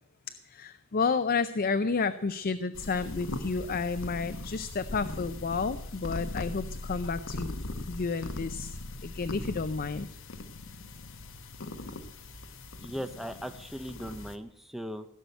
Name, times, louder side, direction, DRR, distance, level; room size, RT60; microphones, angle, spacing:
voice 1, 0.5-7.6 7.9-10.1, left 4 dB, 45° left, 12 dB, 0.5 m, -31 dB
sound 1, 2.7-14.4, left 2 dB, 60° left, 1.1 m, -40 dB
voice 2, 12.8-15.1, equal, ahead, 8 dB, 0.7 m, -38 dB
16.5 x 7.0 x 9.2 m, 0.77 s
head